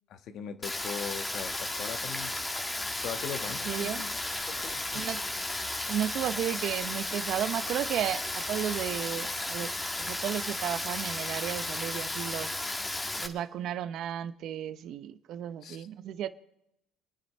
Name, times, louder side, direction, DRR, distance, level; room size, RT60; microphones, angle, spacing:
voice 1, 0.1-2.4 3.0-4.1 4.5-5.1 15.6-15.9, left 8 dB, 65° left, 1.3 m, -40 dB
Rain, 0.6-13.3, left 2 dB, 15° left, 1.8 m, -34 dB
voice 2, 3.7-4.0 4.9-5.2 5.9-9.7 10.0-12.5 13.2-16.3, right 10 dB, 65° right, 0.8 m, -33 dB
25.5 x 9.8 x 4.3 m
supercardioid pair, 85°, 0 cm